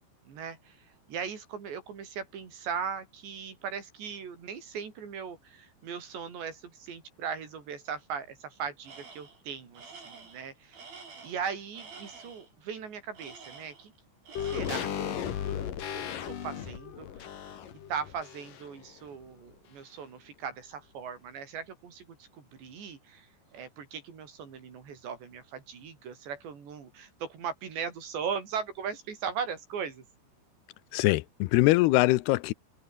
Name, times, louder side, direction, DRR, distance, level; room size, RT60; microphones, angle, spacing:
voice 1, 0.3-0.8 1.1-10.8 11.2-13.9 14.4-15.7 15.9-17.3 17.9-23.3 23.5-30.0, right 6 dB, 75° right, 6.8 m, -38 dB
Tools, 8.8-9.4 9.7-12.5 13.1-14.0 14.3-15.1, right 4 dB, 55° right, 8.2 m, -49 dB
sound 1, 14.4-18.8 19.1-19.2, left 9 dB, 55° left, 3.6 m, -36 dB
voice 2, 30.9-32.5, left 20 dB, 80° left, 2.5 m, -23 dB
omnidirectional pair, 5.1 m